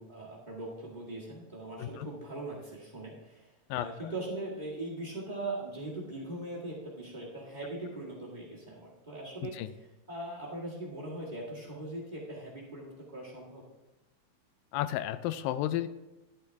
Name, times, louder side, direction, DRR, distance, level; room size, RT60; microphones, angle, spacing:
voice 1, 0.0-9.6 10.1-13.6, right 2 dB, 25° right, -4 dB, 1.0 m, -40 dB
voice 2, 14.7-15.9, left 13 dB, 85° left, 13 dB, 2.3 m, -32 dB
11.5 x 8.9 x 3.4 m, 1.1 s
omnidirectional pair, 4.0 m